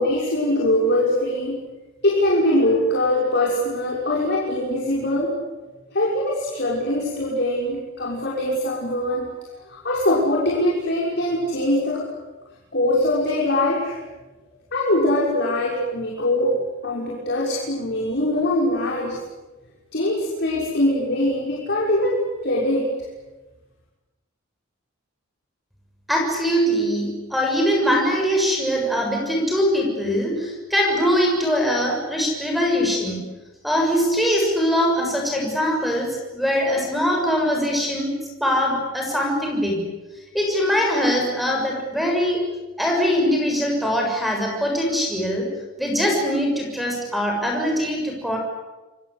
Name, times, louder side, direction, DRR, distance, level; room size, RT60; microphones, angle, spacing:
voice 1, 0.0-1.6 2.0-5.3 5.9-12.0 12.7-14.0 14.7-16.6 16.8-19.2 19.9-22.9, left 1 dB, 55° left, -4 dB, 6.1 m, -22 dB
voice 2, 26.1-33.2 33.6-38.1 38.4-39.9 40.3-42.5 42.8-45.5 45.8-48.4, equal, ahead, 1 dB, 6.8 m, -22 dB
28.5 x 23.5 x 8.3 m, 1.2 s
head